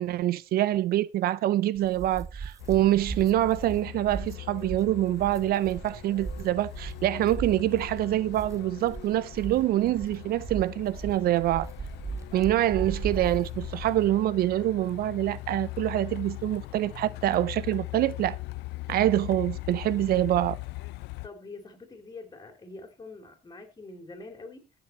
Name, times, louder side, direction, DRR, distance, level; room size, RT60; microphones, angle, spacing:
voice 1, 0.0-11.7 12.3-18.4 18.9-20.6, right 14 dB, 65° right, 0.5 m, -25 dB
sound 1, 1.7-14.1, right 5 dB, 20° right, 0.5 m, -39 dB
Truck, 2.6-21.3, left 20 dB, 85° left, 0.5 m, -40 dB
voice 2, 21.2-24.7, left 3 dB, 25° left, 3.4 m, -45 dB
15.5 x 7.0 x 4.4 m
cardioid pair, 110°, 17 cm